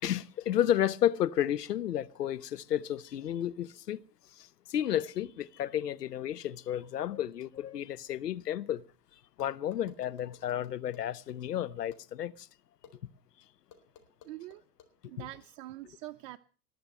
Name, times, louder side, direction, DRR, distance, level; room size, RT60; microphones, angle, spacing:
voice 1, 0.0-4.0 4.7-8.8 9.4-12.5, left 11 dB, 90° left, 0.8 m, -32 dB
sound 1, 9.4-11.4 11.9-12.0 12.8-12.9 13.7-14.9, left 8 dB, 40° left, 4.1 m, -55 dB
voice 2, 14.2-14.6 15.1-16.4, right 16 dB, 55° right, 0.8 m, -44 dB
19.5 x 7.0 x 7.5 m
hypercardioid pair, 100°, 46 cm